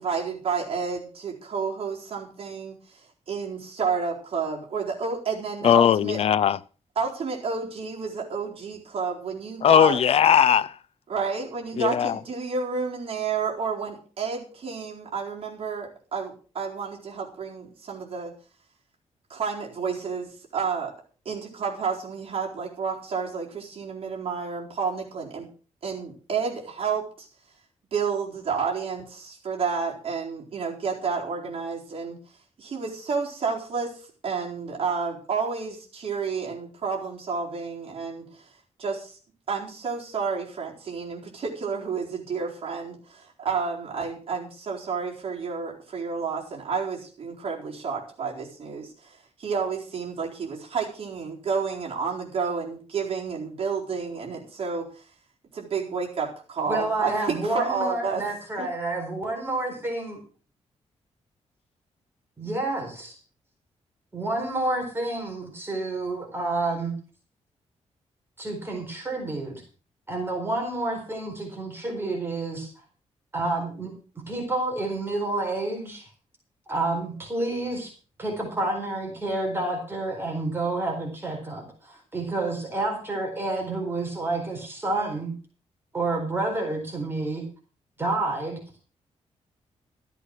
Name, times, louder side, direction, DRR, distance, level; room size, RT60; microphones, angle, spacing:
voice 1, 0.0-6.2 7.0-10.0 11.1-18.3 19.3-20.9 21.2-25.5 25.8-27.3 27.9-32.2 32.6-38.4 38.8-39.2 39.5-55.0 55.5-58.2 58.6-58.7, right 5 dB, 50° right, 4.2 m, -30 dB
voice 2, 5.6-6.6 9.6-10.7 11.8-12.1, left 9 dB, 55° left, 0.5 m, -19 dB
voice 3, 56.7-60.2 62.4-63.2 64.1-66.9 68.4-69.6 70.1-72.8 73.3-73.9 74.3-76.1 76.7-77.9 78.2-85.3 85.9-87.4 88.0-88.6, right 2 dB, 20° right, 4.2 m, -29 dB
14.0 x 8.3 x 6.2 m
wide cardioid pair, 165°, 12 cm